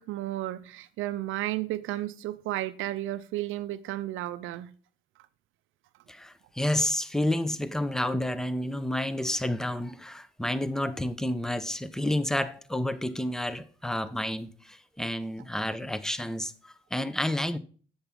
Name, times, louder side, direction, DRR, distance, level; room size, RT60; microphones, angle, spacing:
voice 1, 0.0-4.7, right 15 dB, 85° right, 0.5 m, -33 dB
voice 2, 6.1-17.6, left 1 dB, 5° left, 0.7 m, -30 dB
8.0 x 7.1 x 3.7 m
cardioid pair, 90°, 20 cm